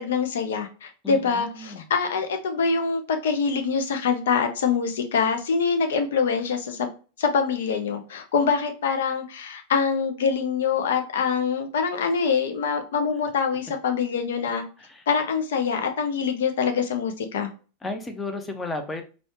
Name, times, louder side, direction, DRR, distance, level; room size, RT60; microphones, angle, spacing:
voice 1, 0.0-6.9 7.2-14.6 15.1-17.5, left 5 dB, 60° left, 6 dB, 0.6 m, -25 dB
voice 2, 1.0-1.8 14.8-15.0 17.8-19.0, left 2 dB, 15° left, 6 dB, 0.7 m, -33 dB
4.1 x 2.4 x 3.0 m, 0.35 s
figure-of-eight pair, 90°, 0 cm